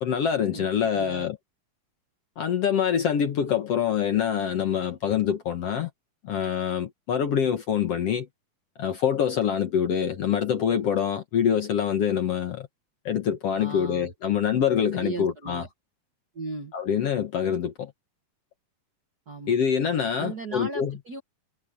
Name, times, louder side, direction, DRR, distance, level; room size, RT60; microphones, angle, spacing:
voice 1, 0.0-1.4 2.4-5.9 6.2-8.3 8.8-12.7 13.1-15.6 16.7-17.9 19.5-20.9, left 8 dB, 60° left, 1.8 m, -25 dB
voice 2, 0.5-1.2 13.6-14.1 14.9-15.7 16.3-16.7 19.3-19.6 20.2-21.2, right 3 dB, 50° right, 1.2 m, -37 dB
omnidirectional pair, 4.0 m